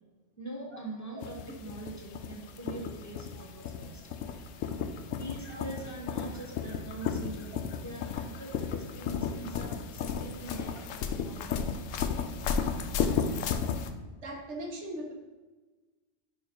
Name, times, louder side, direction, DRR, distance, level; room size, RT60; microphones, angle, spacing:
voice 1, 0.4-4.0 5.1-11.9, right 2 dB, 15° left, -1 dB, 1.0 m, -43 dB
sound 1, 1.2-13.9, left 6 dB, 90° left, 1.0 m, -34 dB
voice 2, 14.2-15.1, right 1 dB, 65° right, 2 dB, 1.3 m, -40 dB
5.4 x 4.7 x 5.1 m, 1.3 s
omnidirectional pair, 1.3 m